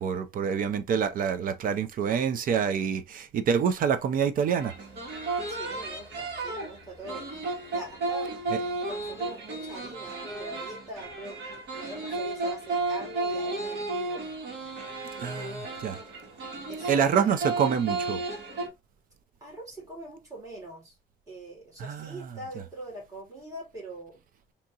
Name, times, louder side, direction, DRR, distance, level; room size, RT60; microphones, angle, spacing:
voice 1, 0.0-4.7 15.2-16.0 16.9-18.2 21.8-22.2, right 7 dB, 50° right, 0.4 m, -26 dB
sound 1, 4.6-18.7, right 3 dB, 70° right, 1.6 m, -33 dB
voice 2, 5.5-7.3 7.7-8.4 8.9-11.4 11.7-14.3 15.1-15.5 16.7-17.4 19.4-21.0 21.3-24.2, right 2 dB, 20° right, 2.1 m, -43 dB
3.5 x 2.8 x 2.7 m
cardioid pair, 170°, 18 cm